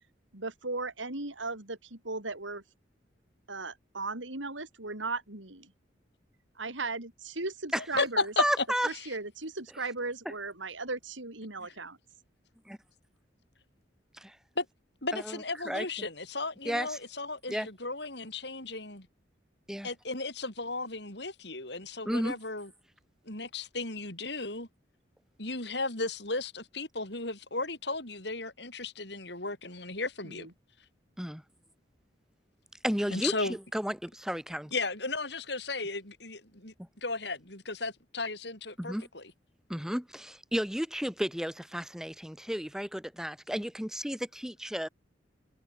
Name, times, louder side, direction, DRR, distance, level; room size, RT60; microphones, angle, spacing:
voice 1, 0.3-2.6 3.5-5.7 6.5-8.3 8.8-12.0 30.2-30.5, right 3 dB, 90° right, 4.9 m, -37 dB
voice 2, 7.8-9.0 14.6-14.7 15.0-19.1 19.8-22.7 23.2-24.7 25.4-30.5 33.1-33.6 34.7-36.7 37.0-39.2, left 3 dB, 65° left, 7.8 m, -35 dB
voice 3, 8.4-8.9 12.7-12.8 14.2-14.4 15.1-15.9 16.6-17.0 17.5-17.7 19.7-19.9 22.0-22.4 31.2-31.4 32.8-34.7 38.8-39.1 39.7-44.9, equal, 5° right, 1.2 m, -33 dB
head